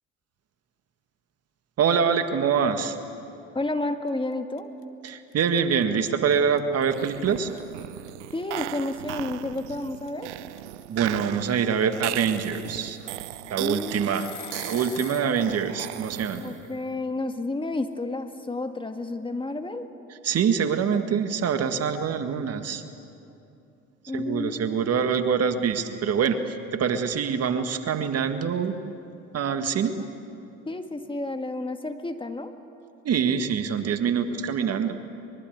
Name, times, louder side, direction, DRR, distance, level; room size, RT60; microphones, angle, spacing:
voice 1, 1.8-3.0 5.0-7.5 10.9-13.0 13.5-14.3 14.7-16.4 20.1-22.8 24.1-28.8 29.3-30.0 33.0-35.0, right 7 dB, 45° right, 8 dB, 1.8 m, -25 dB
voice 2, 3.6-4.7 8.3-10.3 13.6-14.3 16.4-19.9 24.1-24.8 29.9-30.0 30.7-32.5, left 2 dB, 15° left, 6 dB, 1.8 m, -31 dB
sound 1, 4.1-4.3 4.6-15.3, left 16 dB, 85° left, 1.2 m, -44 dB
sound 2, 6.8-16.7, right 15 dB, 85° right, 0.7 m, -37 dB
24.0 x 22.5 x 8.0 m, 2.7 s
hypercardioid pair, 70°, 34 cm